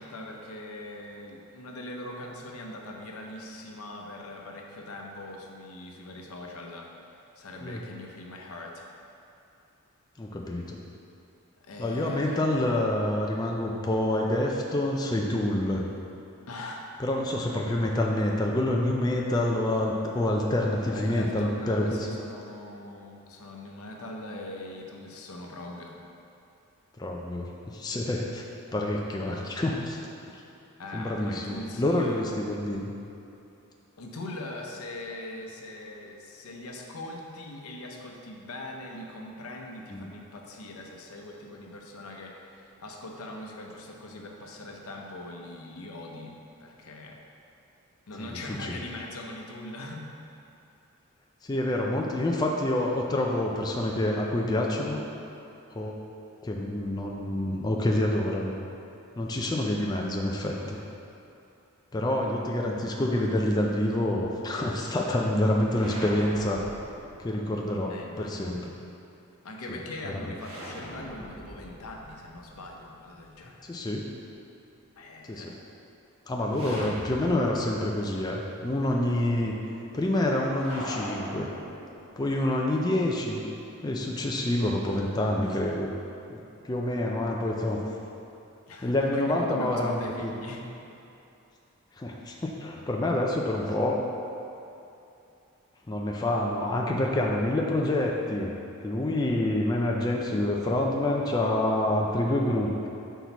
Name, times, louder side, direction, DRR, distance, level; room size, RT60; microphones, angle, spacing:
voice 1, 0.0-8.9 11.6-12.5 16.5-16.9 20.9-26.0 30.8-32.2 34.0-47.2 48.1-50.0 67.9-68.6 69.4-73.7 75.0-75.5 76.6-77.0 88.7-90.7, left 1 dB, 90° left, 1 dB, 0.7 m, -41 dB
voice 2, 10.2-10.8 11.8-15.9 17.0-22.1 27.0-27.5 27.7-28.4 28.7-30.0 30.9-32.9 39.9-40.1 48.5-48.7 51.4-55.0 55.8-56.0 56.4-58.6 59.2-60.8 61.9-66.6 67.2-68.7 69.7-69.8 70.1-70.3 73.7-74.0 75.3-75.5 76.3-79.5 79.9-81.5 82.2-83.4 83.8-85.9 86.3-86.4 86.7-87.8 88.8-90.3 92.0-94.1 95.9-98.5 98.8-102.9, left 1 dB, 20° left, -1 dB, 0.4 m, -27 dB
sound 1, 65.7-67.7 70.4-73.4 76.5-77.9 78.2-78.3 80.5-82.3, equal, 85° right, 1.4 m, -42 dB
6.0 x 4.6 x 4.0 m, 2.7 s
head